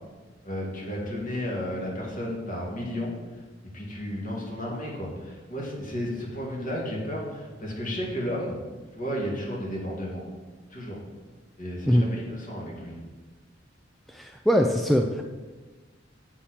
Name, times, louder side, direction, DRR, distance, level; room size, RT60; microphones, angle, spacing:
voice 1, 0.4-3.2 3.7-8.6 8.9-10.2 10.7-11.0 11.6-13.0, equal, 45° left, -3 dB, 2.1 m, -33 dB
voice 2, 14.1-15.2, equal, ahead, 2 dB, 0.3 m, -22 dB
7.2 x 4.3 x 6.5 m, 1.3 s
head